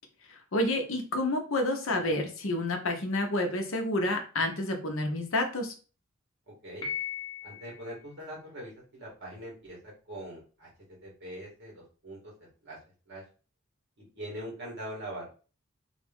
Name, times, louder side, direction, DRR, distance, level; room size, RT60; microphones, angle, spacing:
voice 1, 0.3-5.7, left 1 dB, 70° left, 4 dB, 0.8 m, -29 dB
voice 2, 6.5-6.9 7.4-12.3 12.6-12.8 13.1-13.2 14.0-15.3, right 1 dB, 55° right, -3 dB, 1.9 m, -42 dB
Piano, 6.8-7.9, left 8 dB, 20° left, 1.0 m, -36 dB
3.4 x 2.5 x 3.5 m, 0.36 s
head